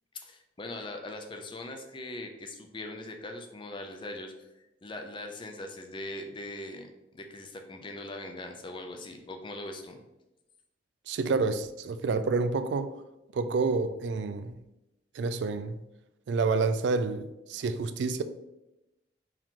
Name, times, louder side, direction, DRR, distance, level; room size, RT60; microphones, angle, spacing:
voice 1, 0.1-10.0, left 2 dB, 25° left, 0.5 m, -41 dB
voice 2, 11.1-12.9 13.3-14.6 15.1-15.8 16.3-18.2, right 4 dB, 70° right, 0.3 m, -28 dB
4.7 x 2.9 x 3.6 m
head